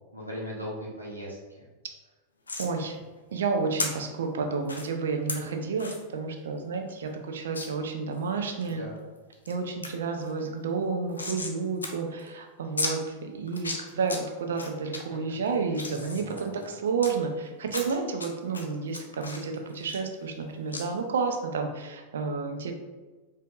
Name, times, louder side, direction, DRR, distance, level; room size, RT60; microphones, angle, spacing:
voice 1, 0.1-1.7 8.7-9.0 14.9-15.0 16.0-16.6, equal, 85° right, -6 dB, 1.1 m, -39 dB
sound 1, 2.5-2.7 3.8-3.9 4.6-4.8 5.3-5.4 5.8-6.0 6.4-6.5 6.7-6.8 7.5-7.7 8.2-8.7 9.2-9.5 9.8-9.9 10.2-11.6 11.8-11.9 12.2-12.3 12.8-12.9 13.5-14.2 14.6-15.0 15.5-17.1 17.7-18.3 18.5-20.4 20.7-20.8, left 3 dB, 75° left, 0.5 m, -34 dB
voice 2, 2.6-3.0 3.3-8.8 9.5-22.7, right 4 dB, 65° right, 4 dB, 0.5 m, -31 dB
5.0 x 2.7 x 2.5 m, 1.3 s
figure-of-eight pair, 90°, 0 cm